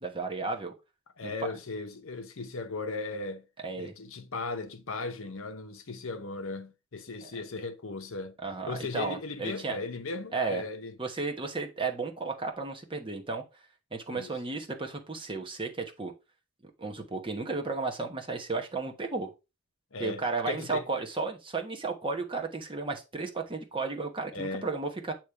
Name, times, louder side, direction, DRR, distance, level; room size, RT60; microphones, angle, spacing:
voice 1, 0.0-0.7 1.2-1.5 3.6-3.9 7.2-7.3 8.4-9.8 10.3-10.6 11.0-13.4 13.9-16.1 16.6-19.3 20.0-25.1, right 3 dB, 25° right, 1.1 m, -33 dB
voice 2, 1.2-3.5 3.7-8.4 8.7-10.9 14.1-14.3 19.9-20.8 24.3-24.7, left 3 dB, 60° left, 0.8 m, -37 dB
8.4 x 3.1 x 4.8 m
head